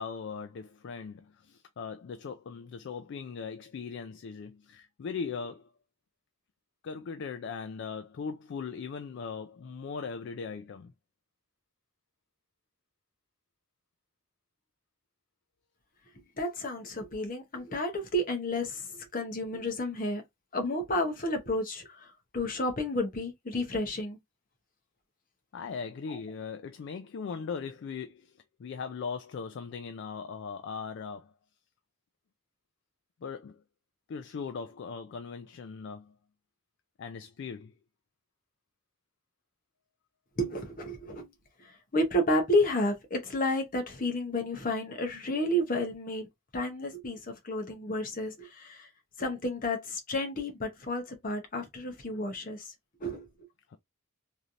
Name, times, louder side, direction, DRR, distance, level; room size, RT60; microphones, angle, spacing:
voice 1, 0.0-5.7 6.8-10.9 25.5-31.3 33.2-33.6 34.1-36.1 37.0-37.7 53.7-53.8, left 5 dB, 55° left, 0.3 m, -39 dB
voice 2, 16.4-20.2 20.5-24.2 26.1-26.2 40.4-41.3 41.6-46.3 46.5-48.9 49.2-52.7 53.0-53.3, left 1 dB, 40° left, 0.8 m, -31 dB
3.1 x 2.7 x 2.4 m
head